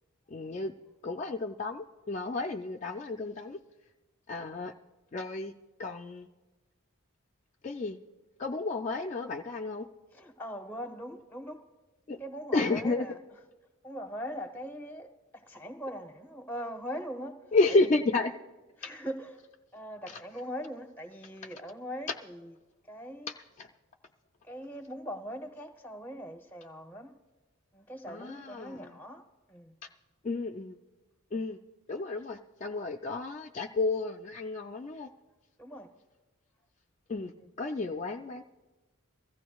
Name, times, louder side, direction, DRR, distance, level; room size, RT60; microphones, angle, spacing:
voice 1, 0.3-0.7 1.0-3.6 4.3-4.7 5.1-5.5 5.8-6.3 7.6-8.0 8.4-9.9 12.1-12.2 12.5-13.1 17.5-18.3 20.1-20.2 22.1-22.2 23.3-23.7 28.1-29.0 30.2-30.8 31.3-31.6 31.9-35.1 37.1-38.4, left 3 dB, 35° left, 0.3 m, -31 dB
voice 2, 10.2-11.6 12.2-13.2 13.8-17.4 18.8-19.3 19.7-22.4 22.9-23.3 24.4-27.1 27.7-29.7 35.6-35.9, equal, 10° left, 0.8 m, -41 dB
23.5 x 15.0 x 2.3 m
head